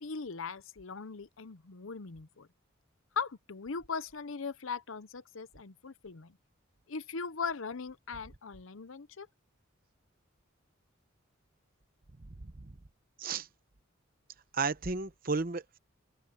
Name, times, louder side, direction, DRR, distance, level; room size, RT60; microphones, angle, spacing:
voice 1, 0.0-2.5 3.2-6.4 6.9-9.3, left 5 dB, 75° left, 0.8 m, -39 dB
voice 2, 14.5-15.8, right 4 dB, 45° right, 0.9 m, -33 dB
open air
head